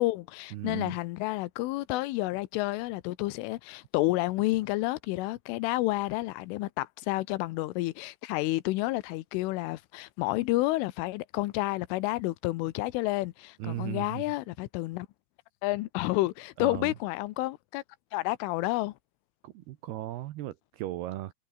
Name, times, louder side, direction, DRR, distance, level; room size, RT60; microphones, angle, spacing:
voice 1, 0.0-15.1 15.6-17.8 18.1-18.9, left 19 dB, 85° left, 3.4 m, -30 dB
voice 2, 0.5-0.9 13.6-14.2 16.6-16.9 19.4-21.3, right 15 dB, 75° right, 2.5 m, -36 dB
omnidirectional pair, 5.6 m